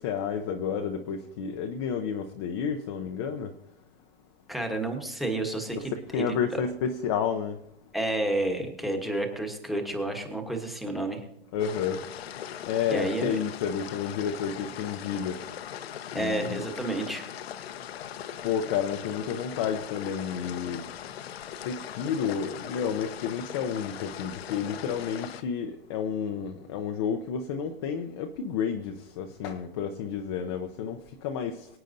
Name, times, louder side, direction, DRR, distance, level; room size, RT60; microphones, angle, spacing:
voice 1, 0.0-3.5 5.7-5.9 6.1-7.6 11.5-12.0 12.7-15.4 16.1-16.7 18.4-20.8 21.6-31.6, left 7 dB, 25° left, 0.5 m, -31 dB
voice 2, 4.5-6.6 7.9-11.2 12.9-13.4 16.1-17.2, right 2 dB, ahead, 1.0 m, -30 dB
sound 1, 11.6-25.4, left 10 dB, 75° left, 0.8 m, -40 dB
23.5 x 8.9 x 2.6 m
hypercardioid pair, 160°, 31 cm